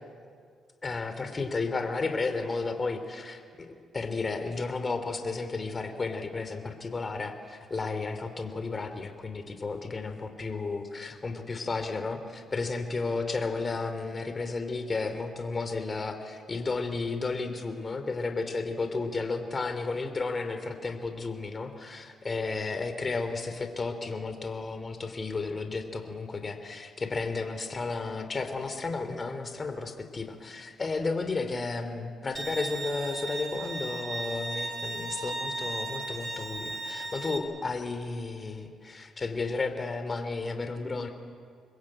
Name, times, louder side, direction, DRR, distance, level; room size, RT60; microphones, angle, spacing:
voice 1, 0.8-41.1, left 3 dB, 30° left, 7 dB, 3.2 m, -33 dB
Bowed string instrument, 32.3-37.4, right 2 dB, 35° right, 5.2 m, -36 dB
26.5 x 21.5 x 8.9 m, 2.2 s
cardioid pair, 90°, 0 cm